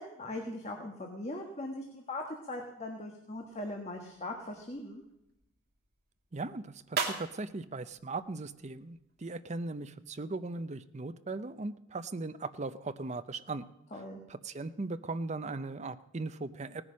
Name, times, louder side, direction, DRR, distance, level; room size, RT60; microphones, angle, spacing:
voice 1, 0.0-5.0 13.9-14.2, left 1 dB, 35° left, 2 dB, 1.5 m, -40 dB
sound 1, 3.3-9.3, right 5 dB, 55° right, 2.3 m, -42 dB
voice 2, 6.3-13.6 13.9-14.0 14.3-16.8, right 3 dB, 35° right, 11 dB, 0.6 m, -38 dB
18.0 x 9.8 x 6.3 m, 0.86 s
head